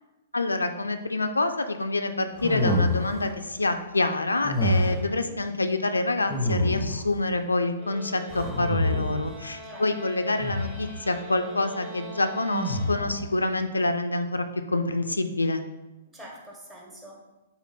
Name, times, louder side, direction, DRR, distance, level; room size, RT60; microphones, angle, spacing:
voice 1, 0.3-15.6, left 2 dB, 80° left, 8 dB, 0.3 m, -27 dB
sound 1, 2.4-3.3 4.4-5.1 6.3-7.1 8.3-9.3 10.4-10.9 12.5-13.2, left 1 dB, 10° left, 0.7 m, -26 dB
voice 2, 4.8-5.3 9.6-10.2 16.1-17.2, equal, 15° right, -2 dB, 1.1 m, -46 dB
sound 2, 7.8-13.4, right 1 dB, 30° right, 0.6 m, -43 dB
4.0 x 2.8 x 4.3 m, 1.0 s
figure-of-eight pair, 115°, 0 cm